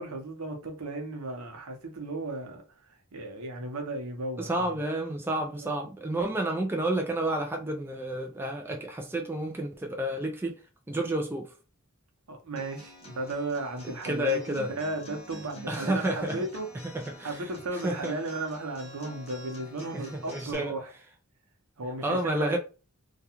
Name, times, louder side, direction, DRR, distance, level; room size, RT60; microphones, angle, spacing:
voice 1, 0.0-4.8 5.5-5.7 12.3-17.0 17.2-20.9 21.8-22.6, right 2 dB, 80° right, 0.8 m, -35 dB
voice 2, 4.4-10.6 10.9-11.5 14.0-14.8 15.7-16.4 16.9-17.4 17.7-18.1 19.9-20.7 22.0-22.6, right 1 dB, 10° right, 0.3 m, -30 dB
Acoustic guitar, 12.6-20.5, right 1 dB, 25° left, 1.0 m, -48 dB
2.3 x 2.3 x 2.8 m
head